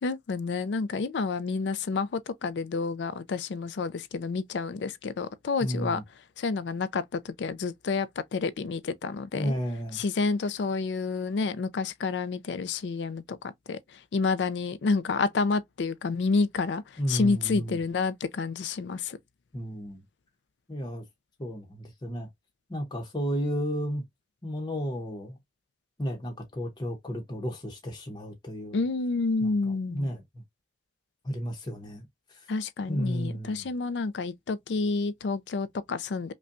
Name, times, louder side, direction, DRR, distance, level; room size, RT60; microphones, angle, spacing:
voice 1, 0.0-6.0 6.4-9.5 9.9-13.8 14.1-16.8 17.1-19.2 28.7-30.1 32.5-36.3, left 4 dB, 75° left, 0.4 m, -29 dB
voice 2, 5.6-6.0 9.3-10.0 17.0-17.8 19.5-20.0 20.7-21.0 21.4-22.3 22.7-24.0 24.4-25.4 26.0-28.8 29.4-29.5 29.9-30.2 31.2-32.4 32.9-33.7, equal, 25° left, 0.8 m, -33 dB
5.2 x 2.2 x 2.5 m
head